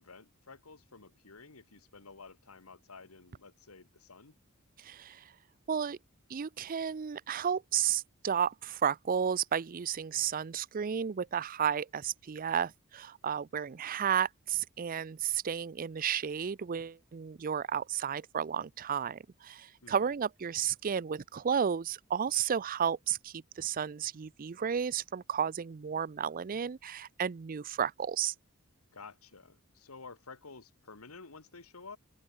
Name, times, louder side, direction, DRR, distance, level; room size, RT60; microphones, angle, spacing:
voice 1, 0.0-4.3 19.8-20.1 28.9-32.0, left 4 dB, 85° left, 1.8 m, -51 dB
voice 2, 4.8-5.2 5.7-6.0 6.3-28.3, right 8 dB, 40° right, 0.4 m, -32 dB
open air
head